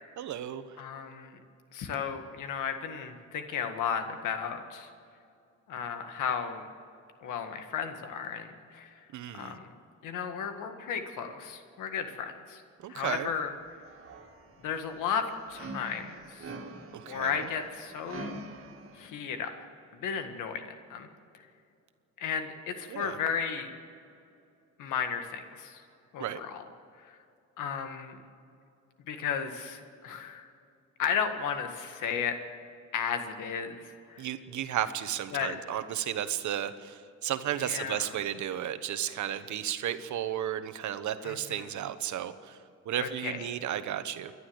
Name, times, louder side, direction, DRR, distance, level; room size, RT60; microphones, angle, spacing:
voice 1, 0.2-0.6 9.1-9.6 12.8-13.3 16.9-17.5 22.9-23.2 26.2-26.4 34.2-42.6 42.8-44.3, right 10 dB, 70° right, 11 dB, 1.2 m, -33 dB
voice 2, 0.8-1.4 1.7-4.9 5.7-6.6 7.2-8.9 9.3-9.7 10.0-12.6 12.9-13.5 14.6-16.5 17.1-18.5 19.0-19.5 20.0-21.1 22.2-23.7 24.8-25.8 26.1-26.7 27.0-27.2 27.6-28.2 29.1-30.5 31.0-32.4 32.9-34.3 35.3-35.6 37.6-38.1 41.2-41.7 43.0-43.4, left 7 dB, 85° left, 7 dB, 1.8 m, -34 dB
sound 1, 13.0-13.4 13.7-19.1, right 2 dB, 45° right, 2.5 m, -45 dB
28.5 x 11.5 x 8.0 m, 2.5 s
cardioid pair, 90°, 30 cm